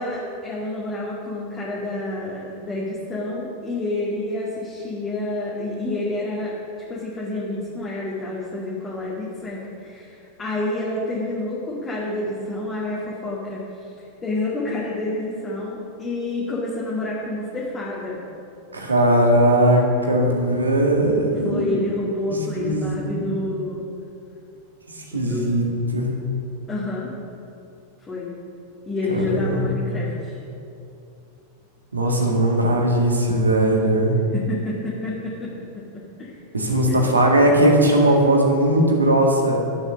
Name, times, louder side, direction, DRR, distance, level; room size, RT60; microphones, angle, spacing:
voice 1, 0.0-6.5 6.9-13.6 14.2-18.2 21.4-23.8 25.1-25.6 26.7-27.1 28.1-28.3 28.9-30.4 34.3-35.5 36.2-36.3 36.9-37.1, left 2 dB, 15° left, -6 dB, 2.1 m, -28 dB
voice 2, 18.7-21.9 22.3-23.3 24.9-25.7 25.9-26.2 29.1-30.0 31.9-34.2 36.5-39.6, right 1 dB, 80° right, 0 dB, 2.0 m, -19 dB
12.0 x 8.0 x 6.3 m, 2.7 s
figure-of-eight pair, 90°, 0 cm